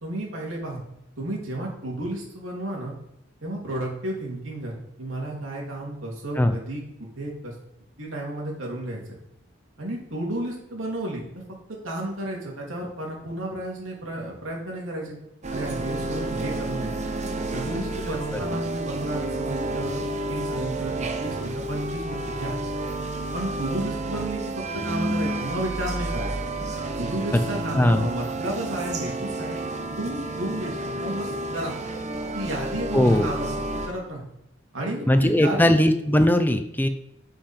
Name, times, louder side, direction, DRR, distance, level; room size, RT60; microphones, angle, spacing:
voice 1, 0.0-0.8 1.2-2.9 3.4-7.5 8.0-9.2 9.8-11.3 11.8-15.2 15.5-16.9 17.5-22.6 23.3-26.3 27.0-29.6 30.0-31.7 32.3-33.5 33.9-34.2 34.7-35.6, right 1 dB, 90° right, -2 dB, 2.9 m, -32 dB
sound 1, 15.4-33.9, right 2 dB, 35° right, 0.9 m, -30 dB
voice 2, 27.7-28.1 32.9-33.3 35.1-36.9, left 1 dB, 10° left, 8 dB, 0.7 m, -19 dB
10.5 x 5.7 x 4.5 m, 0.85 s
head